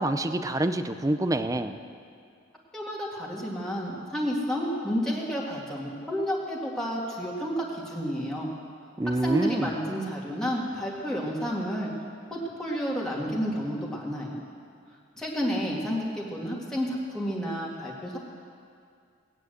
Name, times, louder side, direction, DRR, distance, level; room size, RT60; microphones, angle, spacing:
voice 1, 0.0-1.8 9.0-9.7, right 1 dB, 20° right, 10 dB, 0.6 m, -26 dB
voice 2, 2.7-8.5 9.2-11.9 12.3-14.4 15.2-18.2, equal, 5° left, -5 dB, 2.1 m, -30 dB
18.0 x 9.9 x 7.9 m, 2.3 s
head